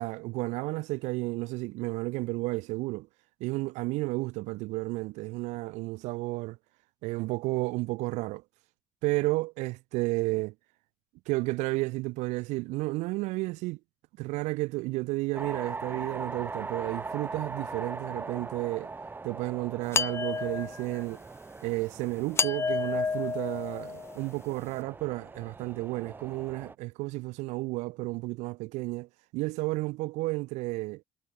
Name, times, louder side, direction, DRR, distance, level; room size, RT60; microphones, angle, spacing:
voice 1, 0.0-3.1 3.4-6.6 7.0-8.4 9.0-10.5 11.3-13.8 14.2-18.9 19.2-21.2 21.6-31.0, right 22 dB, 85° right, 2.3 m, -32 dB
sound 1, 15.3-26.7, right 3 dB, 15° right, 6.8 m, -41 dB
sound 2, 19.9-21.0 22.4-24.2, left 5 dB, 20° left, 1.9 m, -30 dB
cardioid pair, 135°, 12 cm